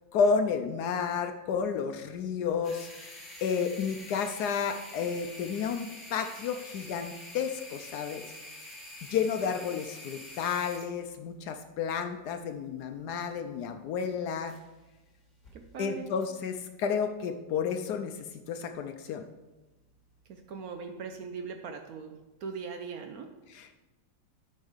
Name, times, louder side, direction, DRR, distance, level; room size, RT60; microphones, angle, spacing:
voice 1, 0.1-8.2 9.0-14.6 15.8-19.3 23.5-23.8, left 6 dB, 70° left, 7 dB, 1.0 m, -31 dB
sound 1, 2.6-14.9 15.2-15.5 16.2-16.3, left 1 dB, 25° left, 2.3 m, -47 dB
voice 2, 15.5-16.1 20.3-23.3, right 5 dB, 65° right, 6 dB, 0.9 m, -40 dB
13.0 x 5.4 x 3.4 m, 1.1 s
omnidirectional pair, 2.0 m